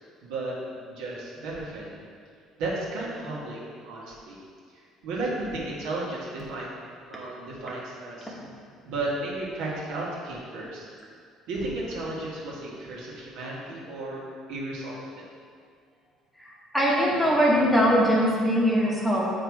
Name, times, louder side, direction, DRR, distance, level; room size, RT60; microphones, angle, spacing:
voice 1, 0.2-1.9 2.6-4.4 5.0-6.7 7.1-8.3 8.8-10.9 11.5-14.2 14.5-15.2, right 2 dB, 85° right, -5 dB, 1.5 m, -34 dB
voice 2, 16.7-19.3, equal, 5° left, -5 dB, 0.9 m, -21 dB
7.9 x 3.0 x 4.7 m, 2.2 s
cardioid pair, 155°, 0 cm